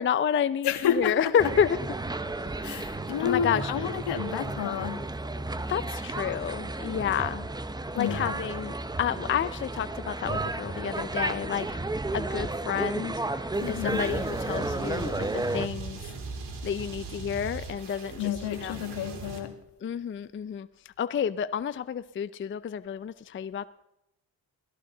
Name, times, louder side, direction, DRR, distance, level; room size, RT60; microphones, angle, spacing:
voice 1, 0.0-1.8 3.2-3.7 5.7-7.5 7.9-11.8 12.1-13.2 13.7-16.0 16.6-18.3 18.6-18.8 19.8-20.7 21.0-23.7, left 8 dB, 30° left, 0.5 m, -29 dB
voice 2, 0.6-1.3 2.6-5.1 7.9-8.4 13.6-14.1 18.2-19.5, left 9 dB, 70° left, 1.7 m, -30 dB
sound 1, 1.4-15.7, right 2 dB, 10° right, 0.7 m, -33 dB
sound 2, 13.5-19.4, right 3 dB, 70° right, 3.2 m, -39 dB
17.0 x 14.0 x 3.9 m
cardioid pair, 80°, 42 cm